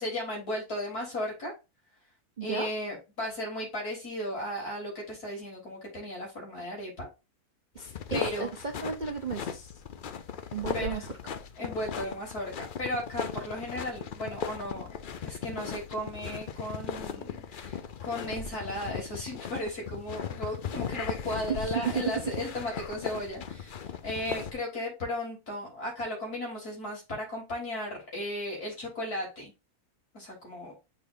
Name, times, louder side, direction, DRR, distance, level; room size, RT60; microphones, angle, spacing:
voice 1, 0.0-1.5 2.4-7.1 8.1-8.5 10.7-11.1 11.6-14.9 15.2-29.5 30.1-30.7, left 1 dB, 75° left, -2 dB, 4.2 m, -35 dB
voice 2, 2.4-2.7 7.7-9.7 10.5-11.1 21.5-22.3, right 7 dB, 45° right, 4 dB, 0.6 m, -33 dB
sound 1, 7.8-24.5, left 7 dB, 60° left, 0.5 m, -38 dB
8.6 x 5.1 x 2.6 m, 0.26 s
omnidirectional pair, 1.6 m